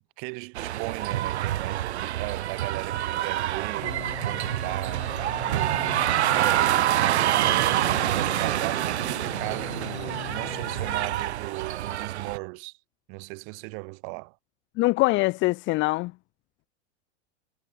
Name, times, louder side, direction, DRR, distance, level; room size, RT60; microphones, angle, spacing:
voice 1, 0.2-6.6 7.0-12.7 13.1-14.4, right 40 dB or more, 50° right, 5.8 m, -37 dB
sound 1, 0.6-12.4, right 13 dB, 75° right, 3.0 m, -26 dB
sound 2, 3.8-11.4, left 20 dB, 60° left, 5.8 m, -41 dB
voice 2, 14.8-16.1, left 21 dB, 35° left, 0.7 m, -23 dB
hypercardioid pair, 115°, 34 cm